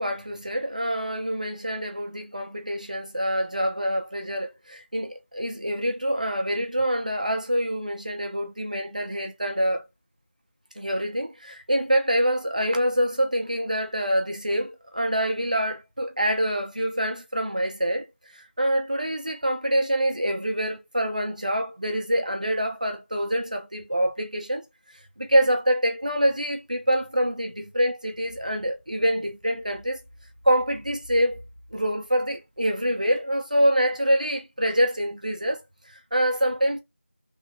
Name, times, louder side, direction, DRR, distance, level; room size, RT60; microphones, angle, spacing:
voice 1, 0.0-9.8 10.8-18.1 18.3-24.6 25.2-30.0 30.4-31.4 31.7-35.6 36.1-36.8, equal, 35° right, 0.7 m, -25 dB
3.4 x 2.5 x 3.8 m
figure-of-eight pair, 180°, 7 cm